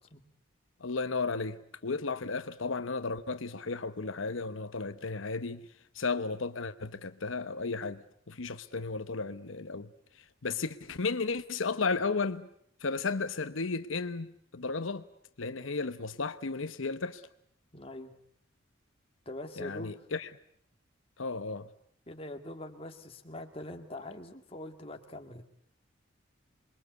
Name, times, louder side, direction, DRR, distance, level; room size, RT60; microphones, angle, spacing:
voice 1, 0.8-5.7 5.9-9.9 10.2-12.5 12.8-14.3 14.5-15.0 15.4-17.2 19.6-20.3 21.2-21.7, left 4 dB, 85° left, 1.0 m, -34 dB
voice 2, 17.7-18.1 19.3-20.0 22.1-25.4, left 1 dB, 30° left, 2.2 m, -43 dB
27.5 x 22.5 x 8.2 m
head